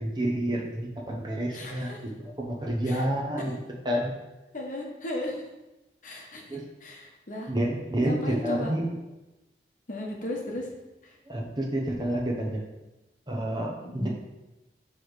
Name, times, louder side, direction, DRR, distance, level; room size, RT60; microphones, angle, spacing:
voice 1, 0.0-2.1 2.4-3.6 3.8-4.1 6.5-6.6 7.5-8.9 11.3-12.6 13.3-14.1, right 1 dB, 25° right, -1 dB, 0.8 m, -29 dB
voice 2, 1.5-2.0 2.8-3.0 4.5-5.4 6.0-7.5 8.0-8.7 9.9-10.7 11.0-11.1 13.8-14.1, left 1 dB, 45° left, 0 dB, 1.0 m, -36 dB
6.1 x 3.2 x 4.7 m, 1.0 s
head